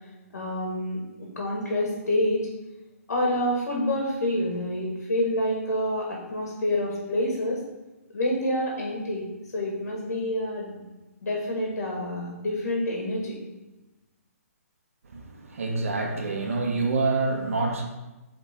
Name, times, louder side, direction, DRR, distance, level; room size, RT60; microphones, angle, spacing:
voice 1, 0.3-2.4 3.1-7.6 8.1-9.2 9.5-10.8 11.2-13.4, left 1 dB, 80° left, -2 dB, 1.7 m, -27 dB
voice 2, 15.1-17.8, right 3 dB, 60° right, 1 dB, 1.2 m, -27 dB
8.4 x 3.6 x 3.7 m, 1.1 s
hypercardioid pair, 170°, 9 cm